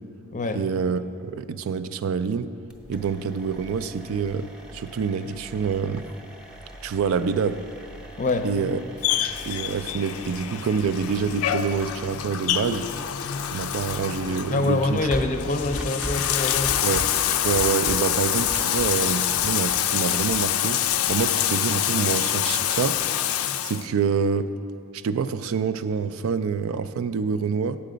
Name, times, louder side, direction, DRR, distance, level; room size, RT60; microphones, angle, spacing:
voice 1, 0.5-2.5 2.9-6.1 6.8-7.6 8.4-8.8 9.1-12.9 13.5-15.1 16.8-17.1 17.4-20.8 21.1-23.0 23.3-23.4 23.6-24.5 24.9-27.8, right 6 dB, 70° right, 12 dB, 0.3 m, -26 dB
sound 1, 2.7-20.6, equal, 5° right, 0.6 m, -40 dB
Bathtub (filling or washing), 9.0-23.8, left 11 dB, 85° left, 0.4 m, -26 dB
voice 2, 14.5-16.8, left 2 dB, 35° left, 7 dB, 0.6 m, -25 dB
8.6 x 7.6 x 5.0 m, 2.4 s
head